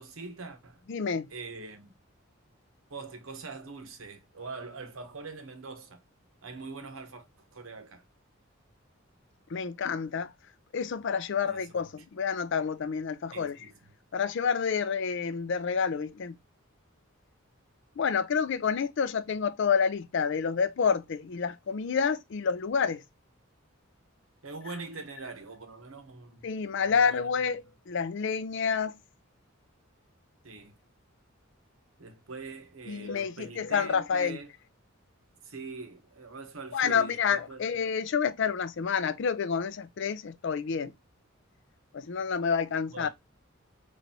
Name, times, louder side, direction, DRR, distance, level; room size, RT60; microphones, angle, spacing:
voice 1, 0.0-0.8 1.3-1.9 2.9-6.0 6.4-7.3 7.5-8.0 11.4-11.9 13.3-13.9 24.4-26.5 26.8-27.3 30.4-30.8 32.0-34.5 35.4-37.7 42.9-43.1, right 3 dB, 80° right, 1.0 m, -43 dB
voice 2, 0.9-1.3 9.5-10.3 10.7-13.6 14.1-16.4 18.0-23.0 26.4-29.0 32.9-34.4 36.7-40.9 41.9-43.1, left 6 dB, 60° left, 0.4 m, -29 dB
4.0 x 3.3 x 2.6 m
head